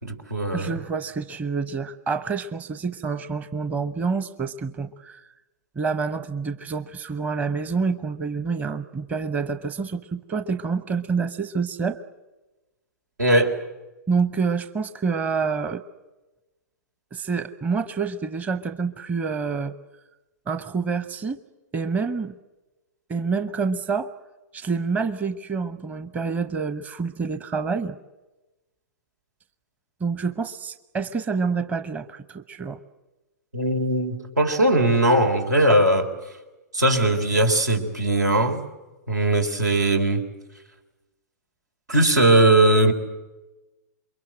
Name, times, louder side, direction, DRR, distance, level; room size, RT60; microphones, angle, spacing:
voice 1, 0.0-0.7 13.2-13.6 33.5-36.1 36.7-38.6 39.1-40.2 41.9-42.9, right 1 dB, 80° right, 5 dB, 3.9 m, -19 dB
voice 2, 0.5-5.2 5.8-12.0 14.1-15.8 17.1-19.7 20.5-21.4 21.7-22.4 23.1-24.1 24.5-28.0 30.0-32.8, right 5 dB, 15° right, 11 dB, 0.9 m, -27 dB
28.0 x 23.0 x 7.8 m, 1.1 s
figure-of-eight pair, 110°, 9 cm